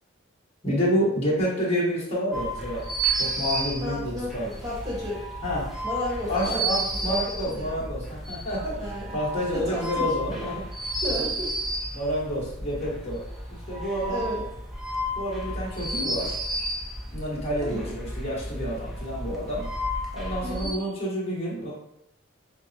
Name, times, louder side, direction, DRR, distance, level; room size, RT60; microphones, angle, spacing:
voice 1, 0.6-2.8 3.2-4.5 5.4-5.7 6.3-10.6 11.1-11.2 11.9-13.2 13.5-14.2 15.1-16.4 17.1-19.7 20.1-21.7, equal, 30° left, -6 dB, 1.1 m, -29 dB
sound 1, 2.3-20.7, right 1 dB, ahead, 0.4 m, -32 dB
voice 2, 3.8-5.2 5.8-6.8 7.1-7.8 8.8-9.2 9.5-10.1 10.3-10.4 11.0-11.5 14.0-14.5 17.6-17.9 20.4-20.8, equal, 20° right, -5 dB, 1.0 m, -33 dB
5.1 x 2.0 x 2.6 m, 0.79 s
head